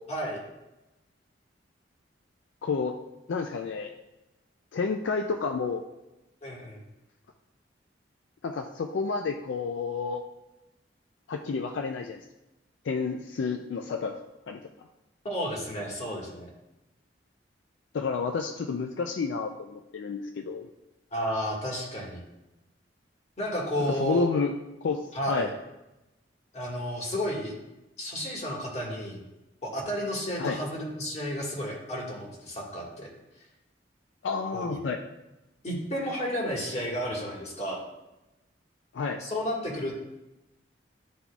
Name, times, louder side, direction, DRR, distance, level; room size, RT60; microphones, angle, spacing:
voice 1, 0.1-0.4 6.4-6.8 15.2-16.5 21.1-22.2 23.4-24.3 25.1-25.5 26.5-27.5 28.0-29.2 29.6-33.1 34.5-34.8 35.6-37.8 39.2-40.0, equal, 40° left, -2 dB, 1.6 m, -32 dB
voice 2, 2.6-3.0 3.3-3.9 4.7-5.8 8.4-10.2 11.3-12.2 12.8-14.2 14.5-14.6 17.9-20.7 23.9-25.5 30.4-30.6 34.2-35.0 38.9-39.2, left 4 dB, 80° left, 4 dB, 0.4 m, -30 dB
11.0 x 3.9 x 2.3 m, 0.97 s
head